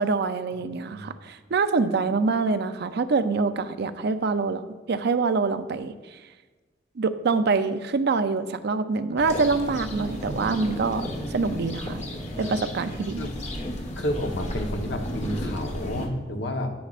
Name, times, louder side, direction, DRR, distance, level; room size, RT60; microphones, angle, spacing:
voice 1, 0.0-5.9 7.0-12.0 12.4-13.3, right 4 dB, 60° right, 10 dB, 0.5 m, -25 dB
sound 1, 9.2-16.1, equal, 35° left, 1.3 m, -33 dB
voice 2, 14.0-16.7, left 1 dB, 65° left, 4 dB, 1.0 m, -30 dB
10.0 x 10.0 x 2.5 m, 1.3 s
head